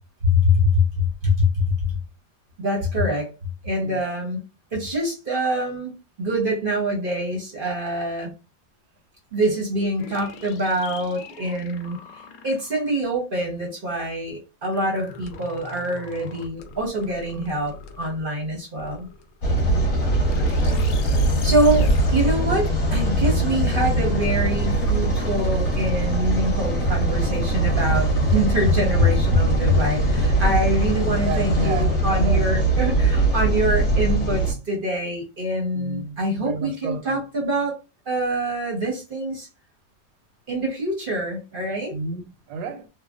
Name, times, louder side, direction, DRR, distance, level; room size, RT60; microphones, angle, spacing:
voice 1, 0.2-1.5 2.6-3.3 3.6-4.4 4.7-5.9 6.2-8.3 9.3-12.0 12.4-19.1 21.4-37.8 38.1-39.5 40.5-42.0, equal, 45° right, 0.7 m, -24 dB
sound 1, 10.0-13.0 14.7-18.4 18.8-19.4 19.9-22.4, left 4 dB, 75° left, 0.9 m, -42 dB
sound 2, 19.4-34.5, right 2 dB, 40° left, 1.0 m, -21 dB
voice 2, 20.4-20.9 31.2-32.8 35.7-37.2 41.9-42.9, right 4 dB, 85° right, 1.3 m, -31 dB
3.1 x 2.1 x 2.3 m
omnidirectional pair, 2.0 m